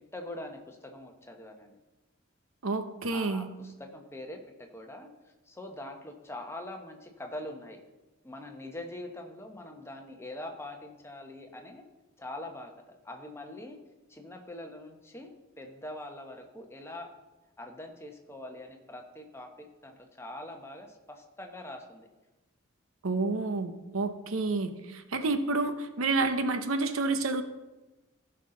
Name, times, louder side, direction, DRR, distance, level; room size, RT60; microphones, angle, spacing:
voice 1, 0.1-1.8 3.1-5.1 5.5-7.8 8.2-11.8 12.2-13.8 14.1-17.1 17.6-22.1, left 1 dB, 10° left, 3 dB, 1.0 m, -43 dB
voice 2, 2.6-3.5 23.0-27.4, right 3 dB, 80° right, 9 dB, 0.8 m, -29 dB
15.5 x 5.7 x 3.9 m, 1.1 s
head